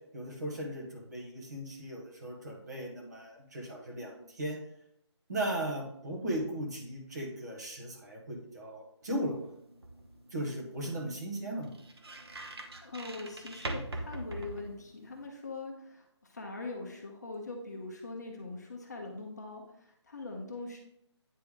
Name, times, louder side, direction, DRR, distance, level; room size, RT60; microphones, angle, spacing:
voice 1, 0.1-4.6 5.3-9.4 10.3-11.7, right 1 dB, 35° right, -2 dB, 1.5 m, -37 dB
sound 1, 9.0-15.3, right 1 dB, 60° right, 1.0 m, -43 dB
voice 2, 12.8-20.8, left 3 dB, 35° left, 1 dB, 0.9 m, -42 dB
9.1 x 3.3 x 3.7 m, 0.77 s
hypercardioid pair, 175°, 15 cm